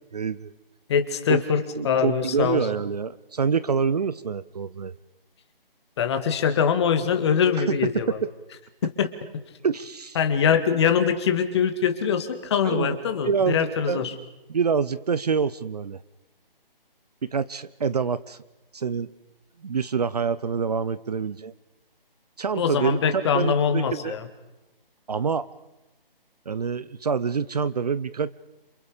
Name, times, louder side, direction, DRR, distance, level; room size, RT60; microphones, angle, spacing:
voice 1, 0.1-0.5 1.3-1.4 1.7-4.9 7.7-8.3 9.6-10.2 12.6-13.0 13.2-14.1 14.5-16.0 17.2-18.4 18.7-19.1 19.6-21.5 22.4-24.2 25.1-25.5 26.5-28.3, right 6 dB, 45° right, 16 dB, 0.7 m, -26 dB
voice 2, 0.9-2.7 6.0-8.2 8.8-9.1 10.2-14.1 22.6-24.3, left 7 dB, 30° left, 8 dB, 2.1 m, -23 dB
29.0 x 28.0 x 5.1 m, 1.0 s
figure-of-eight pair, 155°, 29 cm